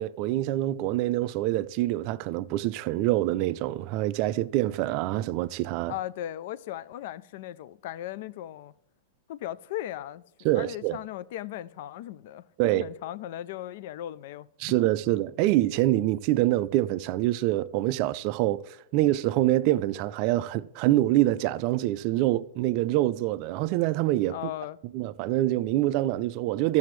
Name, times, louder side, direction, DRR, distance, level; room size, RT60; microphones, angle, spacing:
voice 1, 0.0-5.9 10.4-11.0 12.6-12.8 14.6-24.4 24.9-26.8, right 15 dB, 30° right, 0.3 m, -25 dB
voice 2, 5.9-8.7 9.3-10.2 10.5-14.5 15.0-15.1 24.3-24.8, left 13 dB, 45° left, 0.3 m, -37 dB
15.0 x 6.9 x 3.1 m
supercardioid pair, 180°, 0 cm